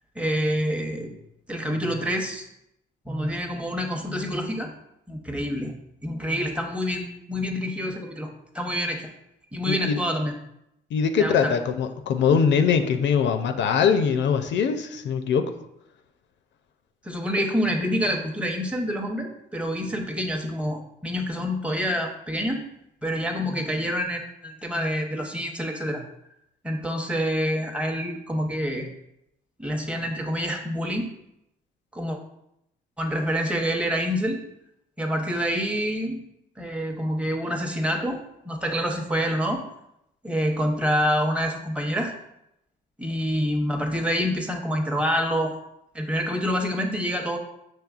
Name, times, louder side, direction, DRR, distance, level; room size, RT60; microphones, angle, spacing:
voice 1, 0.2-1.1 1.5-2.5 3.1-4.7 5.1-5.7 6.0-8.3 8.5-9.1 9.5-10.4 11.2-11.5 17.0-22.6 23.0-26.0 26.6-28.9 29.6-31.1 31.9-32.2 33.0-34.4 35.0-36.2 36.6-39.6 40.2-42.1 43.0-45.5 45.9-47.4, equal, 5° right, 2 dB, 0.7 m, -27 dB
voice 2, 9.7-10.0 10.9-15.5, left 6 dB, 65° left, 8 dB, 0.4 m, -22 dB
6.0 x 3.1 x 2.4 m, 0.82 s
cardioid pair, 90°, 20 cm